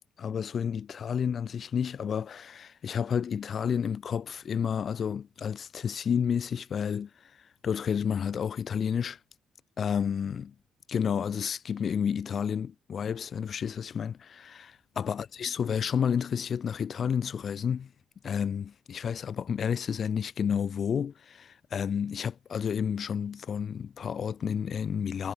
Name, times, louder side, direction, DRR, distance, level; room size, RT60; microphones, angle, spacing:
voice 1, 0.2-9.2 9.8-10.5 10.9-17.9 18.2-25.3, left 7 dB, 55° left, 5.8 m, -31 dB
cardioid pair, 90°, 0 cm